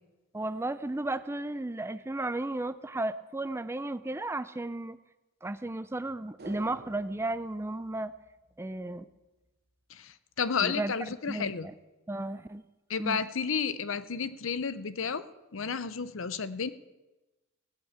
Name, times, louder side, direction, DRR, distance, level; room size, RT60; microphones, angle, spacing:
voice 1, 0.3-5.0 5.4-8.1 8.6-9.1 10.6-10.9 11.3-11.7 12.1-12.6 13.0-13.2, right 2 dB, 10° right, 14 dB, 0.4 m, -34 dB
sound 1, 6.4-8.9 9.2-9.3, right 2 dB, 50° right, 1.0 m, -50 dB
voice 2, 9.9-11.7 12.9-15.2 15.5-16.7, left 6 dB, 75° left, 14 dB, 0.7 m, -32 dB
17.0 x 9.0 x 8.1 m, 1.1 s
head